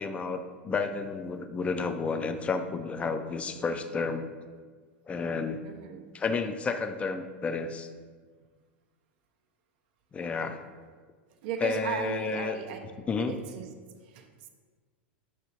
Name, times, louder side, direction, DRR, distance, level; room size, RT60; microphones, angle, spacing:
voice 1, 0.0-4.3 5.1-5.7 6.1-7.9 10.1-10.6 11.6-12.6 13.1-13.4, left 4 dB, 20° left, 8 dB, 0.3 m, -31 dB
voice 2, 5.6-6.0 11.4-12.8 13.2-13.7 14.0-14.3, right 8 dB, 55° right, 5 dB, 0.4 m, -36 dB
6.0 x 2.7 x 2.8 m, 1.5 s
hypercardioid pair, 95°, 6 cm